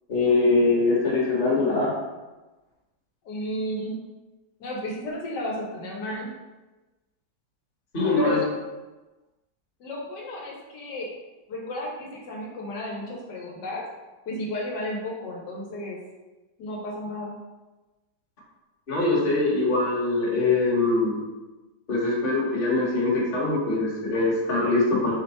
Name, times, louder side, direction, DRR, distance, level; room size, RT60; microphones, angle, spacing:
voice 1, 0.1-1.9 7.9-8.4 18.9-21.2 21.9-25.1, left 3 dB, 35° left, -5 dB, 1.1 m, -23 dB
voice 2, 3.2-3.9 4.6-6.3 8.1-8.5 9.8-11.1 11.5-13.8 14.3-16.0 16.6-17.3, left 1 dB, 85° left, -2 dB, 1.5 m, -33 dB
4.7 x 2.2 x 4.1 m, 1.1 s
omnidirectional pair, 1.8 m